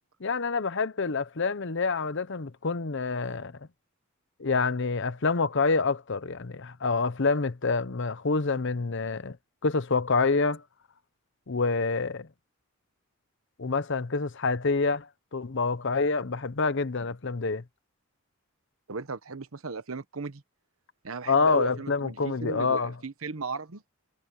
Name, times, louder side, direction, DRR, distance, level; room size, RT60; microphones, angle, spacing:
voice 1, 0.2-3.6 4.4-9.4 9.6-10.6 11.5-12.3 13.6-17.6 21.3-22.9, left 4 dB, 55° left, 0.8 m, -27 dB
voice 2, 18.9-20.4 21.0-23.8, right 4 dB, 70° right, 1.0 m, -36 dB
head